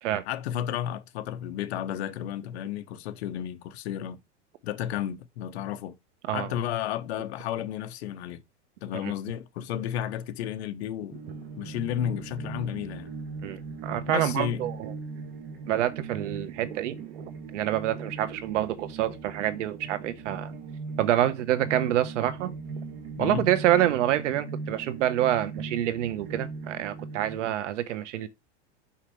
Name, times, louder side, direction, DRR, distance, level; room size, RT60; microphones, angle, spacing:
voice 1, 0.3-4.2 4.6-6.0 6.3-8.4 8.8-11.2 11.6-13.1 14.1-14.6 23.2-23.4, left 11 dB, 65° left, 0.9 m, -32 dB
sound 1, 11.1-27.4, right 4 dB, 55° right, 1.8 m, -39 dB
voice 2, 13.4-14.9 15.7-17.2 17.5-20.5 21.0-22.5 23.2-28.3, right 12 dB, 85° right, 1.1 m, -27 dB
5.8 x 5.6 x 3.2 m
supercardioid pair, 165°, 35 cm